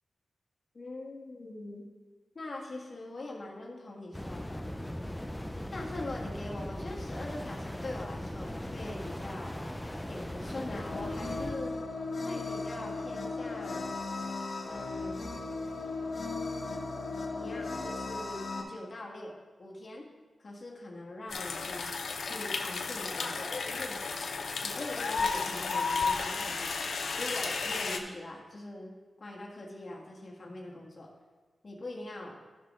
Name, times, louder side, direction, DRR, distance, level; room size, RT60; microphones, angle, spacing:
voice 1, 0.7-1.9 2.3-4.7 5.7-9.7 10.1-11.8 12.2-13.9 14.6-15.3 17.3-20.1 20.4-21.9 22.2-24.0 24.6-26.7 27.2-28.9 29.2-31.1 31.6-32.4, left 2 dB, 40° left, -2 dB, 1.7 m, -42 dB
sound 1, 4.1-11.6, left 1 dB, 5° left, 0.5 m, -39 dB
sound 2, 10.6-18.6, left 3 dB, 55° left, 1.2 m, -36 dB
sound 3, 21.3-28.0, left 4 dB, 75° left, 0.8 m, -33 dB
12.5 x 6.0 x 3.7 m, 1.4 s
wide cardioid pair, 145°, 0 cm